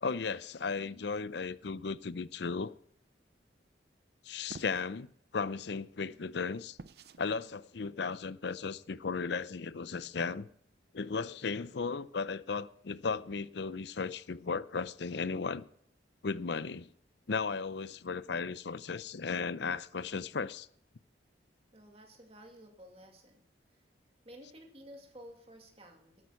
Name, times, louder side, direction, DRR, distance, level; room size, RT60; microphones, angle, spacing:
voice 1, 0.0-2.7 4.2-5.1 5.3-6.8 7.2-10.5 10.9-15.7 16.2-16.9 17.3-20.7, left 5 dB, 65° left, 0.5 m, -35 dB
sound 1, 4.5-4.9 6.8-7.2, right 3 dB, 60° right, 0.6 m, -48 dB
voice 2, 21.7-23.4 23.7-23.8 24.2-26.3, equal, 30° right, 2.4 m, -53 dB
13.0 x 9.1 x 5.8 m
head